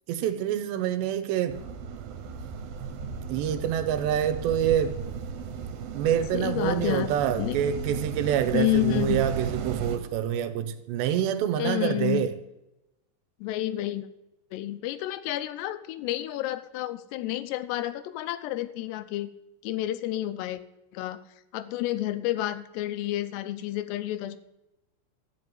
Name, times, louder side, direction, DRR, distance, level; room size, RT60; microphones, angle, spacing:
voice 1, 0.1-1.6 3.3-5.0 5.9-12.3, right 10 dB, 85° right, 3.1 m, -26 dB
sound 1, 1.5-10.0, right 6 dB, 70° right, 2.7 m, -35 dB
voice 2, 6.3-7.6 8.5-9.2 11.6-12.3 13.4-14.1 14.5-19.3 19.6-20.6 20.9-21.2 21.5-24.4, left 15 dB, 80° left, 2.7 m, -30 dB
13.5 x 6.2 x 9.3 m
omnidirectional pair, 5.0 m